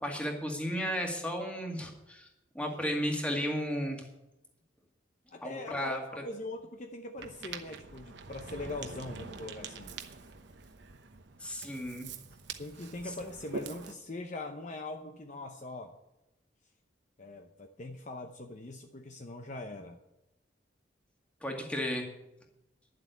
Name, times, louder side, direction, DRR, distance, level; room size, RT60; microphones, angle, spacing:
voice 1, 0.0-2.3 2.5-4.0 5.4-6.0 11.4-12.1 21.4-22.1, equal, 5° left, 1 dB, 2.2 m, -34 dB
voice 2, 5.3-10.0 12.6-16.0 17.2-20.0, left 2 dB, 40° left, 4 dB, 0.8 m, -42 dB
Ocean, 7.2-13.9, right 5 dB, 65° right, 1.0 m, -45 dB
11.0 x 7.7 x 9.3 m, 0.91 s
head